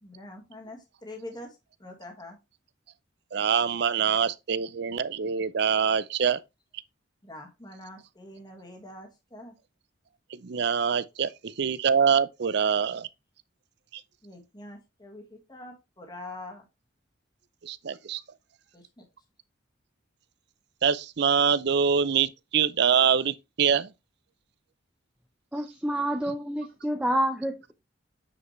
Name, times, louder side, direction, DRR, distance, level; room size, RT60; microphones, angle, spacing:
voice 1, 0.0-2.4 7.2-9.5 14.2-16.7 18.7-19.0, left 1 dB, 20° left, 1.7 m, -44 dB
voice 2, 3.3-6.4 10.3-13.1 13.9-14.0 17.6-18.2 20.8-23.9, right 7 dB, 60° right, 0.5 m, -25 dB
voice 3, 25.5-27.7, right 1 dB, 5° right, 0.7 m, -28 dB
8.2 x 5.0 x 3.1 m
head